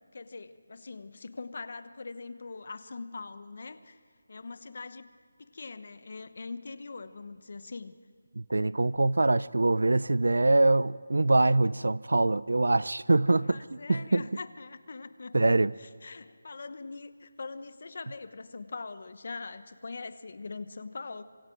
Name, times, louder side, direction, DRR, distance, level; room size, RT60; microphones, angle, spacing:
voice 1, 0.0-4.0 4.3-5.1 5.4-7.9 13.4-15.4 15.8-21.2, left 4 dB, 50° left, 13 dB, 1.1 m, -42 dB
voice 2, 8.4-13.6 13.9-14.2 15.3-15.7, right 2 dB, 85° right, 20 dB, 0.5 m, -24 dB
27.5 x 25.0 x 4.7 m, 2.1 s
figure-of-eight pair, 170°, 0 cm